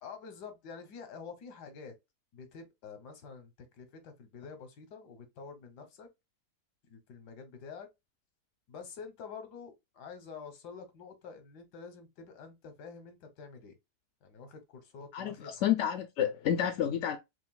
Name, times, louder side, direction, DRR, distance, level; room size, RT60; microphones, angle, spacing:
voice 1, 0.0-1.9 2.3-3.5 3.8-6.1 6.9-7.9 8.7-13.7 14.2-15.5, left 5 dB, 90° left, 1.5 m, -47 dB
voice 2, 15.1-17.2, left 10 dB, 70° left, 0.7 m, -30 dB
5.0 x 3.1 x 2.2 m
omnidirectional pair, 1.7 m